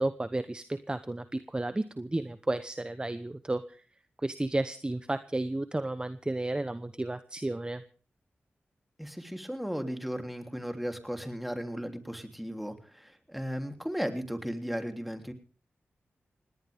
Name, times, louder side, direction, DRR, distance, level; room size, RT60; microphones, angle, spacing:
voice 1, 0.0-3.8 4.2-7.8, right 2 dB, 20° right, 11 dB, 0.9 m, -32 dB
voice 2, 9.0-15.3, equal, ahead, 5 dB, 3.2 m, -36 dB
19.0 x 18.0 x 3.6 m, 0.41 s
cardioid pair, 50°, 4 cm